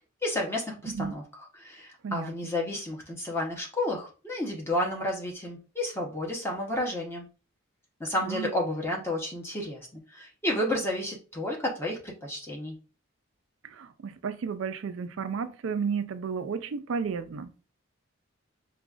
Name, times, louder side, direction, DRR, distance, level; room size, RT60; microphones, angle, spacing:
voice 1, 0.2-1.2 1.6-7.3 8.0-12.7, left 1 dB, 10° left, 0.8 m, -31 dB
voice 2, 13.6-17.5, right 6 dB, 75° right, 0.4 m, -33 dB
4.9 x 2.3 x 2.4 m
head